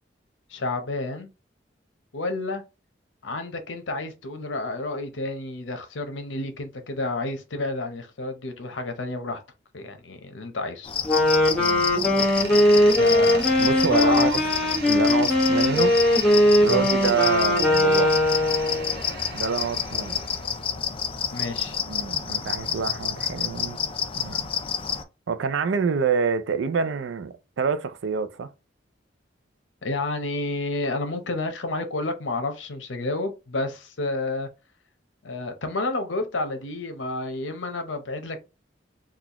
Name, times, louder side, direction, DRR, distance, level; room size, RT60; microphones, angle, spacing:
voice 1, 0.5-1.3 2.1-2.6 3.2-9.4 9.7-10.9 12.0-12.3 12.8-13.5 13.8-14.3 16.7-16.9 21.3-21.8 29.8-34.5 35.2-38.4, left 2 dB, 85° left, 0.8 m, -30 dB
sound 1, 10.8-25.0, left 8 dB, 30° left, 0.4 m, -29 dB
Wind instrument woodwind instrument, 11.0-19.0, left 1 dB, 5° left, 1.2 m, -20 dB
voice 2, 11.6-11.9 13.6-14.4 14.8-16.0 16.6-18.2 19.3-20.2 21.9-23.8 24.1-24.4 25.3-28.5, right 5 dB, 80° right, 0.4 m, -27 dB
Door, 12.2-20.7, right 4 dB, 65° right, 0.9 m, -38 dB
4.0 x 2.3 x 2.9 m
head